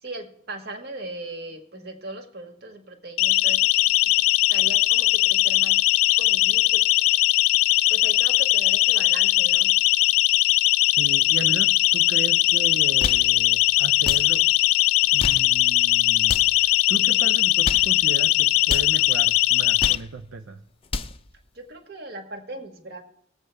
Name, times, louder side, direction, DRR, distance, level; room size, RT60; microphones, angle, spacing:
voice 1, 0.0-3.7 4.0-4.2 4.5-5.8 6.2-6.8 7.1-7.2 7.9-9.7 21.5-23.0, right 2 dB, 50° right, 5 dB, 1.5 m, -38 dB
Siren, 3.2-19.9, left 17 dB, 90° left, 0.3 m, -20 dB
voice 2, 10.9-14.5 15.1-20.6, right 3 dB, 65° right, 7 dB, 0.5 m, -35 dB
sound 1, 12.8-13.3 14.0-14.3 15.0-15.5 16.2-16.6 17.4-17.9 18.6-18.9 19.6-20.1 20.7-21.2, left 3 dB, 25° left, 0.5 m, -31 dB
19.5 x 8.0 x 3.3 m, 0.75 s
head